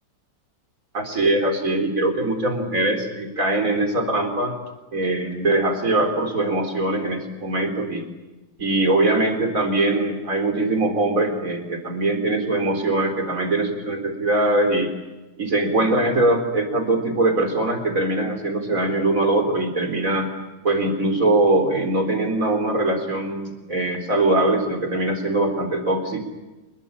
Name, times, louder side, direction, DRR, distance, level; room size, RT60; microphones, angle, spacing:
voice 1, 0.9-4.6 4.9-8.0 8.6-14.9 15.4-20.3 20.6-26.2, right 2 dB, 45° right, 5 dB, 4.4 m, -22 dB
28.5 x 21.0 x 8.7 m, 1.1 s
omnidirectional pair, 2.0 m